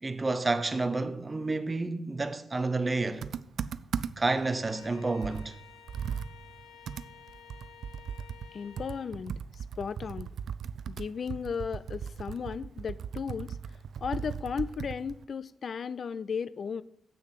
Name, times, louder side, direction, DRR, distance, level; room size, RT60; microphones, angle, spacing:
voice 1, 0.0-3.3 4.2-5.5, right 3 dB, 20° right, 0.7 m, -30 dB
Computer keyboard, 3.2-4.4 4.8-4.9 5.2-8.5 8.8-15.2, right 7 dB, 80° right, 0.3 m, -38 dB
Bowed string instrument, 4.2-9.1, left 9 dB, 75° left, 1.9 m, -53 dB
voice 2, 8.5-10.3 10.9-13.6 14.0-16.8, left 6 dB, 50° left, 0.3 m, -35 dB
7.7 x 6.6 x 8.2 m
wide cardioid pair, 160°, 0 cm